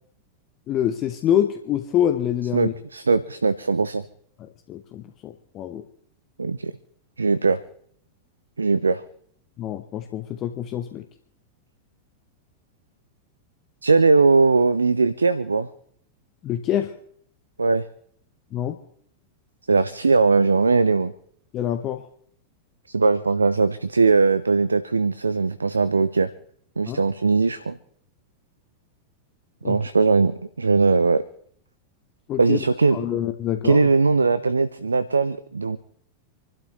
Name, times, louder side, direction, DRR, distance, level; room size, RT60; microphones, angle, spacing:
voice 1, 0.7-2.7 4.7-5.8 9.6-11.0 16.4-16.9 18.5-18.8 21.5-22.0 26.9-27.0 29.6-29.8 32.3-32.6 32.9-33.9, left 10 dB, 35° left, 8 dB, 0.9 m, -26 dB
voice 2, 2.5-4.0 6.4-6.7 7.2-7.6 8.6-9.0 13.8-15.7 17.6-17.8 19.7-21.1 22.9-26.3 26.8-27.8 29.6-31.2 32.4-33.2 33.6-35.8, right 4 dB, 75° right, 15 dB, 0.5 m, -20 dB
27.5 x 12.0 x 3.1 m, 0.63 s
figure-of-eight pair, 90°, 0 cm